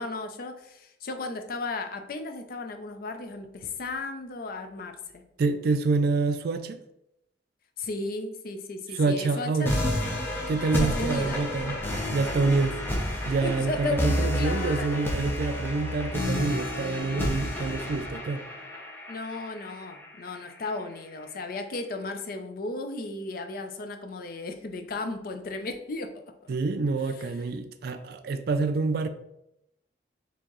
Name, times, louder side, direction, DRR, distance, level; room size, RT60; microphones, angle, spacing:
voice 1, 0.0-5.2 7.8-9.7 10.7-11.4 13.4-15.0 19.1-26.5, left 3 dB, 50° left, 0.4 m, -35 dB
voice 2, 5.4-6.8 8.9-9.8 10.5-11.8 12.1-12.8 13.3-18.4 26.5-29.1, right 3 dB, 55° right, 0.3 m, -27 dB
sound 1, 9.7-20.6, left 1 dB, 10° left, 0.6 m, -30 dB
4.4 x 2.8 x 3.0 m
head